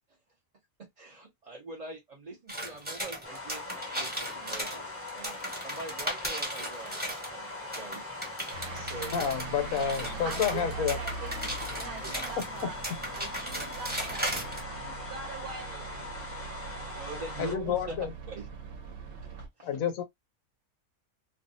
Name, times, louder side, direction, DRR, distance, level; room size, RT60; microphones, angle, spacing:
voice 1, 0.8-7.0 7.3-8.1 8.8-9.3 12.0-12.1 16.2-16.3 16.9-17.9 18.3-18.5 19.3-19.7, right 2 dB, 40° right, 0.5 m, -44 dB
sound 1, 2.5-7.3 7.7-14.6, right 1 dB, 10° right, 0.8 m, -37 dB
sound 2, 3.2-17.5, left 2 dB, 20° left, 0.3 m, -41 dB
sound 3, 8.5-19.5, right 4 dB, 65° right, 1.1 m, -42 dB
voice 2, 8.7-11.0 12.6-12.7 17.4-18.1 19.6-20.0, left 8 dB, 75° left, 1.0 m, -30 dB
voice 3, 10.2-12.8 13.1-15.9, right 5 dB, 85° right, 1.1 m, -44 dB
2.6 x 2.3 x 2.6 m
omnidirectional pair, 1.5 m